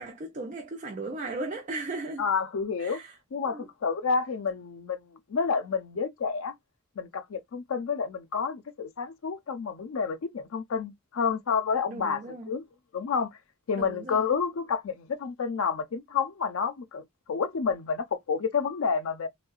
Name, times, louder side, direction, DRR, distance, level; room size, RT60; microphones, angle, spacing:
voice 1, 0.0-2.3 2.8-3.2 3.5-3.7 11.9-12.5 13.8-14.3, right 2 dB, 40° right, 0.5 m, -37 dB
voice 2, 2.2-3.0 3.3-6.5 7.0-12.2 12.5-12.6 12.9-13.3 13.7-19.3, left 5 dB, 90° left, 0.5 m, -29 dB
3.6 x 2.1 x 2.3 m
head